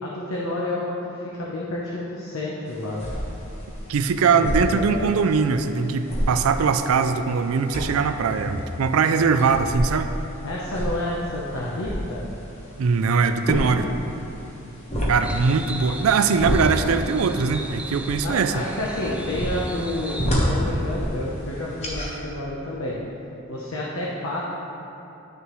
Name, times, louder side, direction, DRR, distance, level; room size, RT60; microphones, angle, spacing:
voice 1, 0.0-3.1 4.3-5.2 10.4-12.3 18.2-23.0 23.5-24.4, left 1 dB, 80° left, -5 dB, 0.9 m, -30 dB
sound 1, 2.7-22.2, equal, 30° left, 1.2 m, -30 dB
voice 2, 3.9-10.1 12.8-13.9 15.1-18.5, right 5 dB, 85° right, 9 dB, 0.4 m, -21 dB
sound 2, 15.2-20.3, right 1 dB, 5° right, 0.3 m, -36 dB
10.5 x 6.6 x 3.1 m, 3.0 s
head